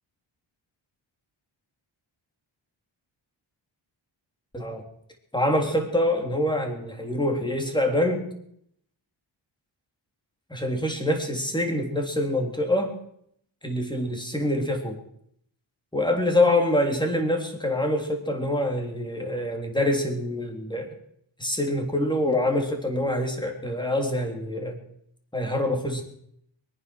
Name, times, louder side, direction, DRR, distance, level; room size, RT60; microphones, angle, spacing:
voice 1, 5.3-8.2 10.5-13.0 13.6-15.0 15.9-20.9 21.4-24.8 25.3-26.0, left 1 dB, 10° left, 3 dB, 3.4 m, -25 dB
22.5 x 9.8 x 6.4 m, 0.70 s
wide cardioid pair, 95°, 47 cm